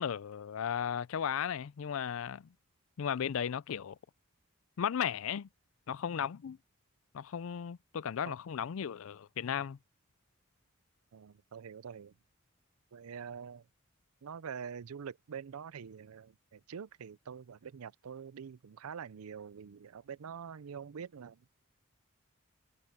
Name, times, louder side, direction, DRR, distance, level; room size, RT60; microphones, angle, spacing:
voice 1, 0.0-2.5 3.0-4.0 4.8-5.5 5.9-6.6 7.1-9.8, left 8 dB, 70° left, 0.4 m, -35 dB
voice 2, 11.1-12.1 12.9-13.7 14.2-21.5, right 7 dB, 85° right, 0.5 m, -45 dB
head